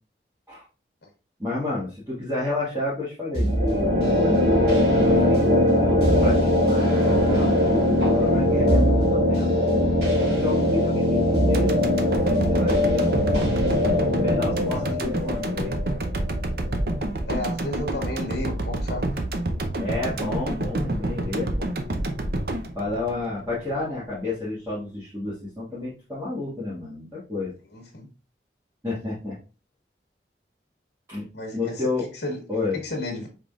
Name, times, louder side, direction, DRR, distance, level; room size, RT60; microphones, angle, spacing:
voice 1, 1.4-4.0 5.0-5.5 5.8-9.5 10.2-13.1 14.1-15.7 19.8-21.7 22.7-27.5 28.8-29.3 31.1-31.2 31.5-32.1 32.5-32.8, left 2 dB, 15° right, -11 dB, 1.6 m, -31 dB
sound 1, 3.3-17.0, left 1 dB, 75° right, 1.8 m, -21 dB
sound 2, 11.5-23.8 24.1-24.2, right 1 dB, 55° right, 0.6 m, -28 dB
voice 2, 14.6-15.0 17.3-19.2 27.7-28.1 31.3-32.4 32.7-33.3, left 1 dB, 75° left, 1 dB, 1.4 m, -33 dB
5.1 x 3.7 x 2.4 m, 0.33 s
head